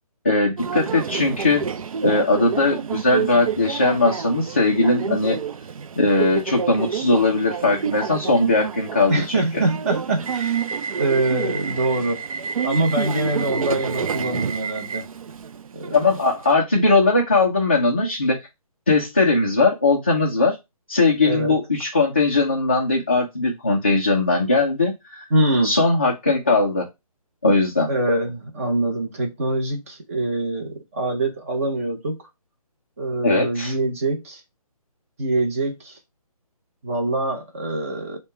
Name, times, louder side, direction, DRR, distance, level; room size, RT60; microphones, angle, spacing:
voice 1, 0.2-1.7 2.0-5.4 6.0-9.4 15.9-18.4 18.9-20.6 20.9-25.3 25.6-26.8 27.4-27.9 33.2-33.7, left 3 dB, 20° left, 0.4 m, -19 dB
Subway metro underground, 0.6-16.5, right 6 dB, 65° right, 0.4 m, -29 dB
voice 2, 9.1-10.6 11.0-12.2 12.6-15.1 15.7-16.0 21.2-21.6 25.3-25.8 27.9-32.3 33.0-34.4 35.2-36.0 36.8-38.2, right 2 dB, 25° right, 0.8 m, -24 dB
5.3 x 2.2 x 4.2 m
hypercardioid pair, 170°, 19 cm